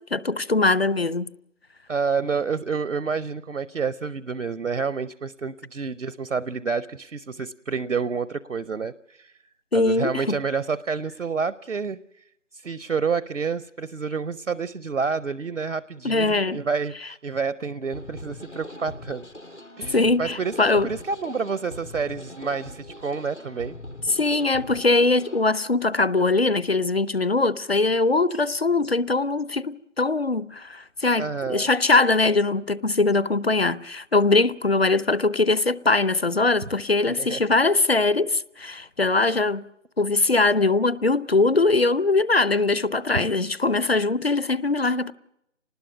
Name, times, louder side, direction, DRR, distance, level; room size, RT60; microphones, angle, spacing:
voice 1, 0.1-1.3 9.7-10.4 16.0-16.6 19.9-20.9 24.1-39.6 40.0-45.1, left 3 dB, 55° left, 0.7 m, -21 dB
voice 2, 1.9-9.3 9.7-12.0 12.5-19.3 19.8-23.8 31.2-31.7 37.1-37.4 43.1-43.3, right 5 dB, 70° right, 0.7 m, -29 dB
sound 1, 17.9-25.5, left 1 dB, 70° left, 7.3 m, -41 dB
26.0 x 19.5 x 6.0 m
figure-of-eight pair, 170°, 38 cm